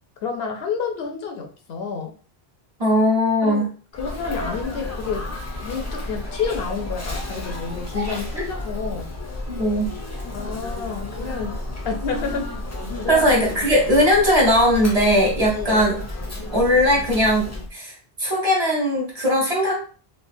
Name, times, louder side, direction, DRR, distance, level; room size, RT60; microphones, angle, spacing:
voice 1, 0.2-2.1 3.4-3.7 3.9-5.3 5.6-9.1 10.3-11.5 11.8-12.5 13.0-13.3 15.6-15.9, left 5 dB, 75° left, 4 dB, 0.8 m, -29 dB
voice 2, 2.8-3.7 9.5-9.9 13.1-15.9 16.5-19.7, equal, 40° right, -4 dB, 1.1 m, -19 dB
Sneeze, 3.9-17.7, left 2 dB, 20° left, 0.5 m, -32 dB
3.3 x 2.5 x 2.6 m, 0.40 s
omnidirectional pair, 1.1 m